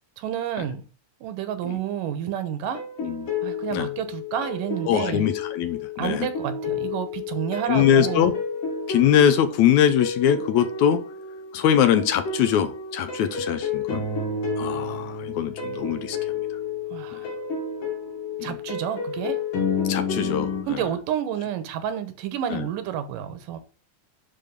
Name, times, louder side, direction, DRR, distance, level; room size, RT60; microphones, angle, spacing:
voice 1, 0.2-0.8 1.2-2.8 3.4-5.3 6.0-8.3 16.9-17.4 18.4-19.4 20.7-23.6, right 9 dB, 90° right, 2.7 m, -30 dB
sound 1, 2.7-20.6, left 4 dB, 90° left, 3.8 m, -31 dB
voice 2, 4.9-6.3 7.7-8.3 8.9-11.0 11.5-14.1 14.6-16.2 17.1-17.2 18.4-18.6 19.9-20.5 22.5-22.7, left 9 dB, 70° left, 2.0 m, -22 dB
10.0 x 4.1 x 5.2 m
omnidirectional pair, 3.7 m